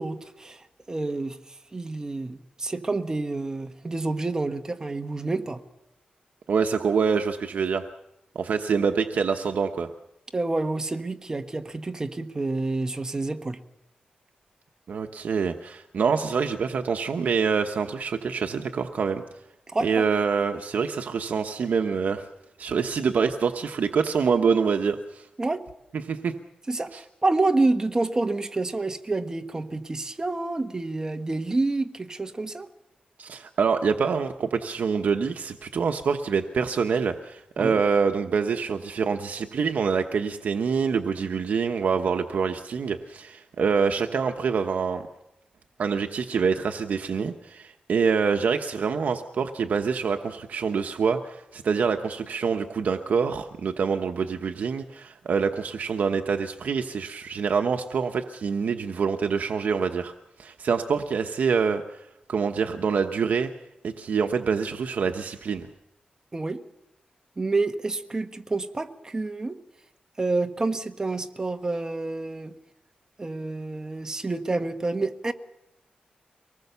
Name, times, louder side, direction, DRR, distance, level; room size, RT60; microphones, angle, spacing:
voice 1, 0.0-1.4 1.7-5.6 10.3-13.6 19.7-20.1 25.4-25.6 26.7-32.7 37.6-37.8 66.3-66.6 67.4-69.6 70.2-72.5 73.2-75.3, right 2 dB, 25° right, 7 dB, 1.3 m, -28 dB
voice 2, 6.5-7.9 8.3-9.9 14.9-19.2 19.8-22.3 22.6-25.3 25.9-26.4 26.9-27.0 33.2-45.1 45.8-60.1 60.4-63.5 63.8-65.7, right 5 dB, 75° right, 5 dB, 1.0 m, -26 dB
24.5 x 19.5 x 6.9 m, 0.87 s
wide cardioid pair, 135°, 3 cm